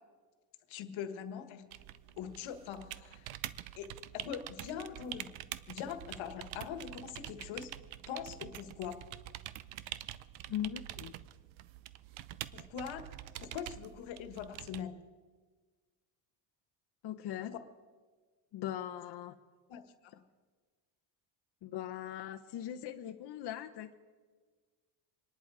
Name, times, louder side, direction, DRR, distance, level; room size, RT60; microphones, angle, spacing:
voice 1, 0.7-1.7 2.2-3.3 3.8-5.3 5.7-7.8 8.1-9.0 12.5-13.0 13.4-15.1 17.4-17.6 19.7-20.2, left 8 dB, 80° left, 9 dB, 1.5 m, -42 dB
sound 1, 1.7-14.8, right 14 dB, 85° right, 0.8 m, -46 dB
voice 2, 10.5-11.1 17.0-17.6 18.5-19.4 21.6-23.9, left 11 dB, 60° left, 6 dB, 0.9 m, -40 dB
26.5 x 11.0 x 4.8 m, 1.5 s
cardioid pair, 125°, 46 cm